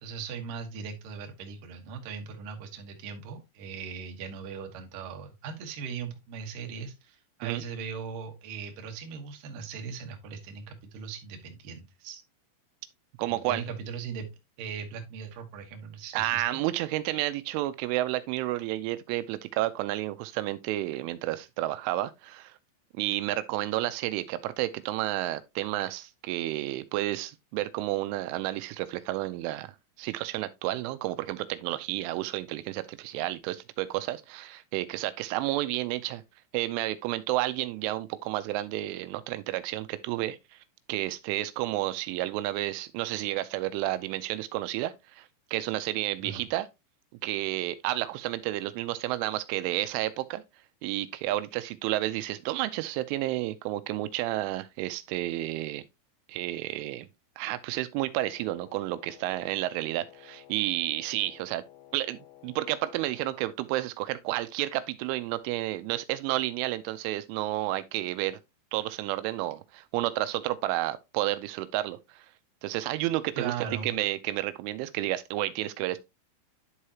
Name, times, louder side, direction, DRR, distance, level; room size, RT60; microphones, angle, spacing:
voice 1, 0.0-12.2 13.3-14.3 14.6-16.6 46.2-46.5 73.4-73.9, right 6 dB, 65° right, 2.3 m, -39 dB
voice 2, 13.2-13.6 16.1-22.5 23.0-36.2 36.5-40.6 40.9-46.7 47.2-50.4 50.8-55.8 56.3-57.1 57.4-61.6 61.9-68.4 68.7-72.3 72.6-73.5 73.8-76.0, right 16 dB, 85° right, 3.0 m, -31 dB
Wind instrument woodwind instrument, 58.1-63.5, left 13 dB, 75° left, 2.9 m, -53 dB
11.0 x 4.8 x 2.8 m
omnidirectional pair, 5.5 m